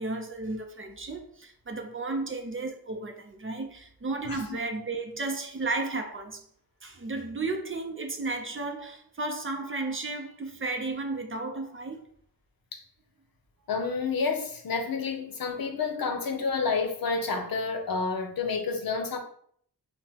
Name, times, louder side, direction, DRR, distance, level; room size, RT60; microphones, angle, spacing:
voice 1, 0.0-6.4 6.8-12.0, right 3 dB, 35° right, 0.5 m, -33 dB
voice 2, 13.7-19.2, left 4 dB, 65° left, 0.7 m, -29 dB
5.6 x 2.1 x 2.8 m
wide cardioid pair, 115°, 38 cm